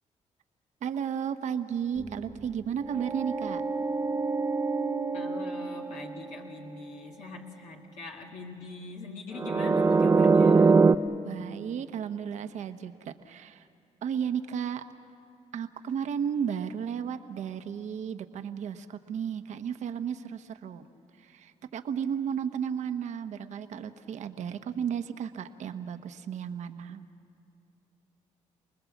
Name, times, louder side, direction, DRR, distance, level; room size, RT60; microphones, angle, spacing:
voice 1, 0.8-3.6 11.2-13.6 14.0-14.8 15.5-20.8 21.2-27.1, right 8 dB, 75° right, 8 dB, 1.1 m, -34 dB
sound 1, 2.0-6.8 9.4-11.0, right 4 dB, 25° right, 0.6 m, -24 dB
voice 2, 5.1-10.9, left 4 dB, 75° left, 0 dB, 1.6 m, -42 dB
28.5 x 20.5 x 7.3 m, 2.5 s
cardioid pair, 90°, 12 cm